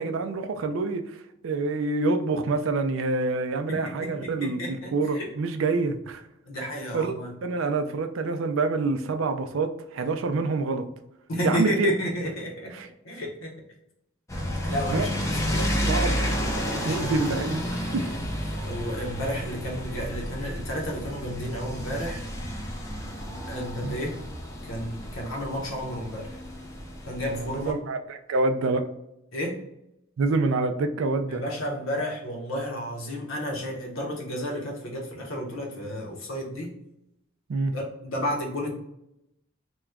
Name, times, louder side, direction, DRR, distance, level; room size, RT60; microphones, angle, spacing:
voice 1, 0.0-6.2 6.9-7.1 7.4-10.9 11.4-11.9 12.8-12.9 14.9-15.1 15.5-16.5 16.8-18.1 23.4-23.5 23.8-24.0 27.2-28.9 30.2-31.4 37.5-37.7, right 3 dB, 70° right, 7 dB, 0.4 m, -27 dB
voice 2, 3.7-5.3 6.5-7.3 11.3-12.7 13.0-13.5 14.6-16.0 16.7-17.2 18.6-22.2 23.5-24.2 24.6-26.4 27.1-27.7 29.3-29.6 31.3-36.7 37.7-38.7, equal, 75° left, -1 dB, 1.0 m, -32 dB
sound 1, 14.3-27.7, equal, 15° left, 0.5 m, -31 dB
2.9 x 2.3 x 3.5 m, 0.83 s
head